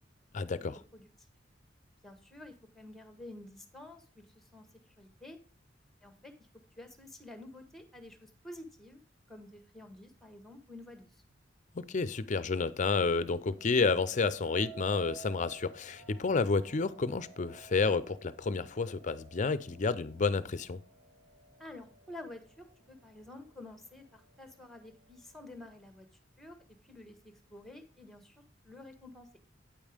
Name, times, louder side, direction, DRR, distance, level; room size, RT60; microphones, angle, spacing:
voice 1, 0.3-0.8 11.7-20.8, left 4 dB, 40° left, 0.5 m, -30 dB
voice 2, 2.0-4.7 5.0-5.4 6.0-6.3 6.8-9.0 9.3-11.2 21.6-26.1 26.4-26.6 26.8-29.3, left 1 dB, ahead, 1.2 m, -50 dB
sound 1, 13.4-22.6 23.1-23.6, right 7 dB, 75° right, 1.8 m, -54 dB
8.8 x 5.4 x 5.0 m
head